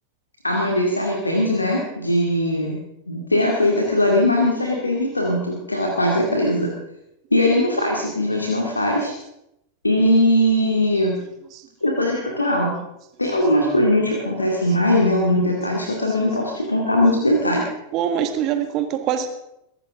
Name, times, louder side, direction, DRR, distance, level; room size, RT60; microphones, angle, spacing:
voice 1, 0.4-2.7 3.1-6.7 7.3-9.1 9.8-11.2 11.8-12.7 13.2-17.6, left 1 dB, 80° left, -1 dB, 2.4 m, -20 dB
voice 2, 17.9-19.4, right 9 dB, 40° right, 8 dB, 1.6 m, -24 dB
22.5 x 11.5 x 3.7 m, 0.84 s
figure-of-eight pair, 90°, 0 cm